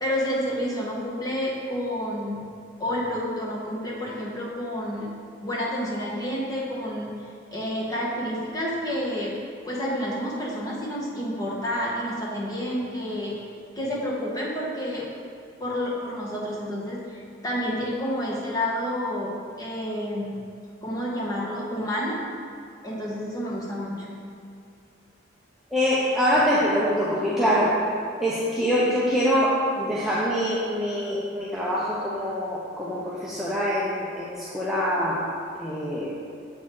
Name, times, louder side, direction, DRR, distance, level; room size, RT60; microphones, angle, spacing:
voice 1, 0.0-2.5 2.8-5.1 5.4-7.1 7.5-9.4 9.6-13.4 13.7-15.0 15.6-20.4 20.8-22.2 22.8-24.2, equal, 20° left, -5 dB, 1.1 m, -29 dB
voice 2, 25.7-27.8 28.2-35.3 35.6-36.1, equal, ahead, -8 dB, 0.6 m, -24 dB
7.3 x 4.0 x 4.4 m, 2.4 s
head